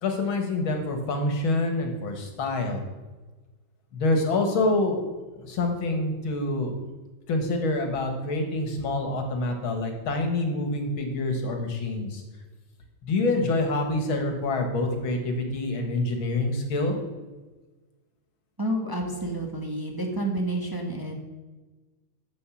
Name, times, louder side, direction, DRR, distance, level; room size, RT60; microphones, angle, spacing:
voice 1, 0.0-2.8 3.9-5.1 5.3-6.7 7.3-12.2 13.0-16.9, left 2 dB, 85° left, 4 dB, 2.4 m, -26 dB
voice 2, 18.6-21.1, right 1 dB, 10° right, 1 dB, 1.3 m, -29 dB
11.0 x 7.7 x 6.3 m, 1.2 s
omnidirectional pair, 2.2 m